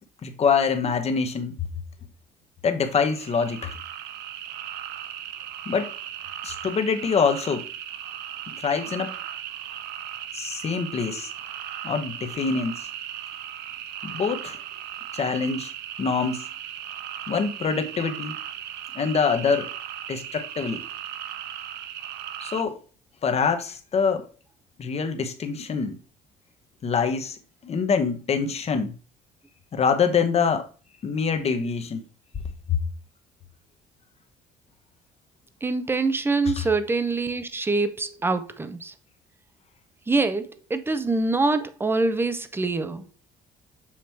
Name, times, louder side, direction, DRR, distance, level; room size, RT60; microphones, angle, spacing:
voice 1, 0.2-1.5 2.6-3.8 5.7-5.9 6.4-7.7 8.5-9.1 10.3-11.3 11.8-12.9 14.0-14.6 15.1-15.7 16.0-16.4 17.3-18.4 18.9-19.7 20.1-20.9 22.4-22.8 23.2-24.3 24.8-25.9 26.8-27.4 27.6-28.9 29.7-30.7 31.0-32.0 32.7-32.8 36.4-36.7, left 5 dB, 40° left, 1.0 m, -25 dB
sound 1, 2.8-22.6, right 11 dB, 80° right, 0.6 m, -37 dB
voice 2, 35.6-38.9 40.1-43.1, right 3 dB, 15° right, 0.6 m, -25 dB
7.3 x 3.0 x 4.4 m
cardioid pair, 110°, 17 cm